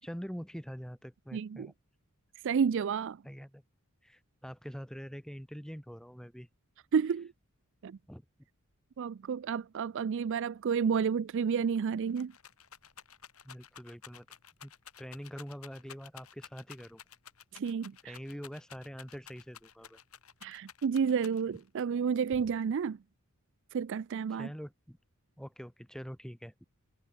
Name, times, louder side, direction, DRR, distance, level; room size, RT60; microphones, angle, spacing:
voice 1, 0.0-1.7 3.2-3.6 4.0-6.5 8.1-8.2 13.4-14.3 14.6-14.7 15.0-17.0 18.0-20.0 24.3-25.0 25.4-26.6, equal, 5° left, 6.4 m, -44 dB
voice 2, 1.3-1.7 2.4-3.2 6.9-7.3 7.8-8.0 9.0-12.3 17.5-18.2 20.4-23.0 23.7-24.5, right 6 dB, 55° right, 0.4 m, -31 dB
Rattle, 11.4-11.5 11.8-21.7 22.3-22.9, left 8 dB, 75° left, 7.1 m, -53 dB
head